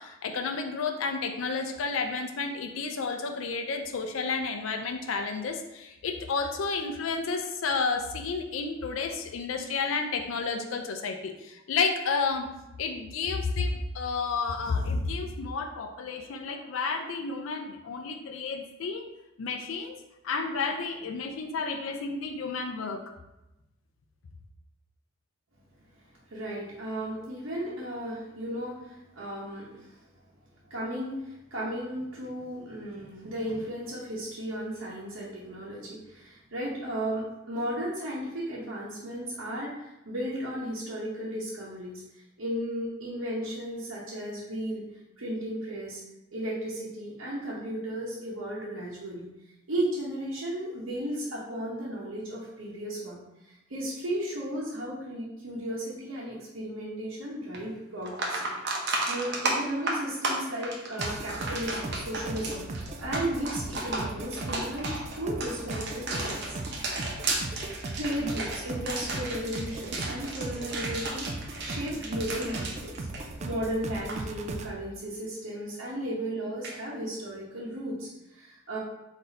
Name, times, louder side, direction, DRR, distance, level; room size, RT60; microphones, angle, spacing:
voice 1, 0.0-12.5 12.8-19.1 19.4-20.0 20.2-23.0, left 4 dB, 80° left, 5 dB, 0.4 m, -31 dB
voice 2, 26.3-30.0 30.7-42.0 42.4-44.8 45.2-46.0 46.3-49.3 49.7-58.4 59.1-66.6 67.6-71.3 71.6-72.9 73.4-78.8, right 1 dB, 80° right, -6 dB, 0.9 m, -35 dB
sound 1, 57.5-57.6 58.0-73.7 73.9-74.2 76.6-76.8, right 2 dB, 55° right, 0.7 m, -33 dB
sound 2, 61.0-74.7, right 2 dB, 35° right, 0.3 m, -38 dB
4.0 x 2.6 x 4.0 m, 0.95 s
head